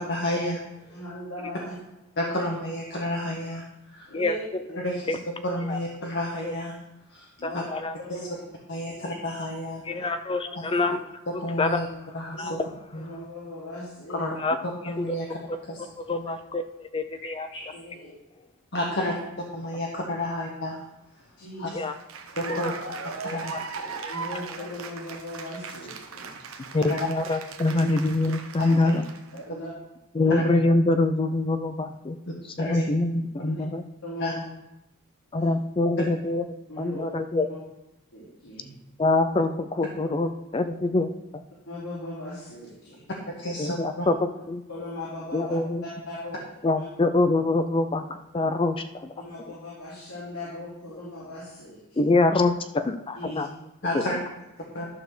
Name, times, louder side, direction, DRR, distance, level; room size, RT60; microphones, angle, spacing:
voice 1, 0.1-0.6 2.2-3.6 3.9-4.1 4.8-4.9 5.4-6.8 7.1-7.3 7.5-7.6 8.7-9.8 11.3-11.9 12.1-12.6 12.9-13.1 14.1-14.4 14.6-15.3 15.7-15.8 16.1-16.4 17.5-17.6 18.7-19.1 19.5-20.8 21.6-21.7 22.4-22.7 23.2-23.5 26.9-27.1 28.6-28.9 30.3-30.4 32.6-32.8 34.2-34.3 43.3-44.1 53.8-54.2 54.7-54.9, left 1 dB, 50° left, -2 dB, 1.3 m, -30 dB
voice 2, 0.9-1.7 2.2-2.4 4.1-4.4 4.7-5.0 7.4-7.6 8.1-8.3 10.0-10.1 10.4-10.8 12.3-12.6 13.0-14.2 17.7-18.1 18.8-18.9 21.4-21.8 22.4-22.6 24.1-26.3 27.7-27.9 29.3-29.7 30.2-30.4 33.4-33.6 34.0-34.4 35.4-35.5 36.7-37.0 38.1-38.8 41.7-43.0 44.7-45.5 45.8-46.4 46.8-46.9 49.2-52.1 53.2-53.4 53.8-54.0 54.6-54.7, left 1 dB, 85° left, -9 dB, 3.6 m, -39 dB
voice 3, 7.4-7.9 9.9-11.0 11.6-11.8 12.4-12.5 14.4-14.6 14.8-15.1 16.0-17.5 21.7-21.9 22.5-22.7 23.2-24.1 26.7-29.1 30.1-32.2 32.6-33.8 35.3-36.5 36.8-37.5 39.0-41.4 43.6-44.6 45.3-45.8 46.6-49.1 52.0-53.5 53.9-54.0, left 2 dB, 25° left, 10 dB, 0.4 m, -25 dB
Cheering / Applause, 21.8-29.4, right 5 dB, 70° right, 0.9 m, -38 dB
12.0 x 4.2 x 6.7 m, 0.90 s
head